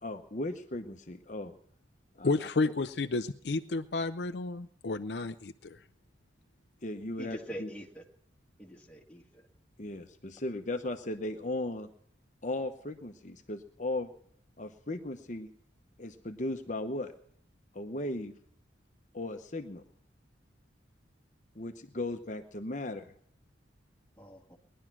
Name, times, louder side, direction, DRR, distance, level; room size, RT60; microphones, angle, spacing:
voice 1, 0.0-1.5 2.1-2.3 2.6-2.7 6.8-7.7 9.8-11.9 12.4-14.1 14.6-15.5 16.0-17.1 17.7-18.3 19.1-19.8 21.5-23.1, left 2 dB, 40° left, 6 dB, 1.0 m, -37 dB
voice 2, 2.2-5.8, left 3 dB, 60° left, 9 dB, 0.6 m, -31 dB
voice 3, 7.2-8.0 8.6-9.5 24.2-24.6, equal, 5° left, 0 dB, 2.0 m, -44 dB
20.0 x 11.0 x 6.1 m, 0.62 s
head